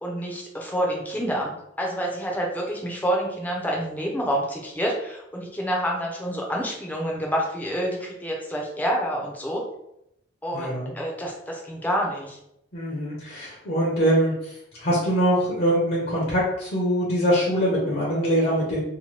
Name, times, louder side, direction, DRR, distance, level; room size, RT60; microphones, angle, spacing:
voice 1, 0.0-9.6 10.4-12.4, equal, 10° left, -2 dB, 0.5 m, -28 dB
voice 2, 10.5-10.9 12.7-14.3 14.8-18.8, equal, 50° left, -5 dB, 0.7 m, -23 dB
2.8 x 2.1 x 3.0 m, 0.78 s
head